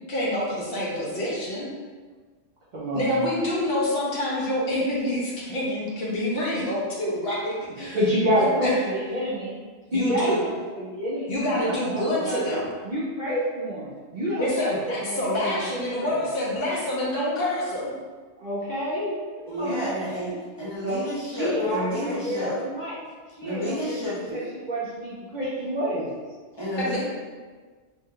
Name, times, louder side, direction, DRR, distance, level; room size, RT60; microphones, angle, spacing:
voice 1, 0.1-1.7 2.9-8.0 8.4-8.7 9.9-10.4 11.3-12.7 14.4-17.9 26.8-27.0, left 1 dB, 55° left, -5 dB, 0.8 m, -27 dB
voice 2, 2.7-3.3 7.8-9.5 9.9-11.3 11.5-12.6 12.8-15.7 16.0-16.2 18.4-19.9 20.8-22.9 23.4-26.1, equal, 55° right, -8 dB, 0.6 m, -28 dB
voice 3, 19.5-22.6 23.4-24.4 26.6-27.0, equal, 30° left, -9 dB, 0.6 m, -30 dB
2.8 x 2.1 x 3.6 m, 1.4 s
omnidirectional pair, 1.2 m